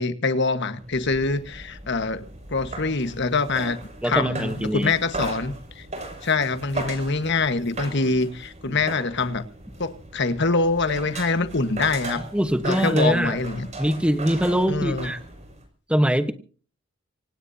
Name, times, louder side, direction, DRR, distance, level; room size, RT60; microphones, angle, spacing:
voice 1, 0.0-3.8 4.1-5.9 6.2-9.4 9.8-12.2 12.6-13.7 14.7-15.1, left 3 dB, 60° left, 1.5 m, -24 dB
sound 1, 0.8-15.7, right 2 dB, 35° right, 6.6 m, -37 dB
voice 2, 4.0-4.9 8.7-8.8 12.3-13.4 13.8-15.2 15.9-16.3, equal, 5° right, 1.1 m, -22 dB
26.0 x 18.0 x 2.8 m
head